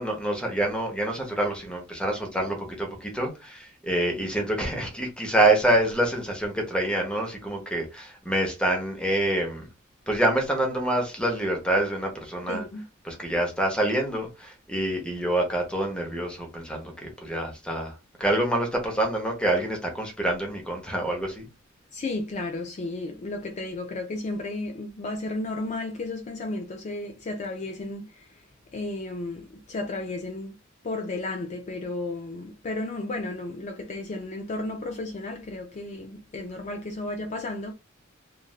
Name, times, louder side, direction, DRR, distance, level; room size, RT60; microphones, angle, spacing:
voice 1, 0.0-9.7 10.1-12.6 13.0-21.5, right 1 dB, 5° left, 0.8 m, -26 dB
voice 2, 12.5-12.8 21.9-28.4 28.7-30.5 30.8-37.7, left 2 dB, 35° left, 0.4 m, -33 dB
3.1 x 2.5 x 2.4 m
head